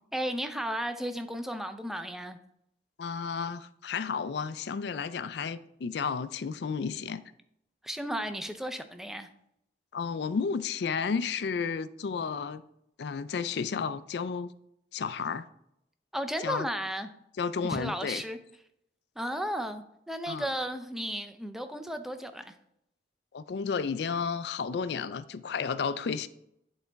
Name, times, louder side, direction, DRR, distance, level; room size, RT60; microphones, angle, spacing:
voice 1, 0.1-2.4 7.8-9.3 16.1-17.1 17.6-18.4 19.2-22.6, equal, ahead, 0.5 m, -34 dB
voice 2, 3.0-7.2 9.9-12.6 13.0-14.5 14.9-15.4 16.4-16.7 17.4-18.2 20.3-20.5 23.3-26.3, left 5 dB, 65° left, 0.4 m, -32 dB
10.5 x 4.1 x 3.4 m
head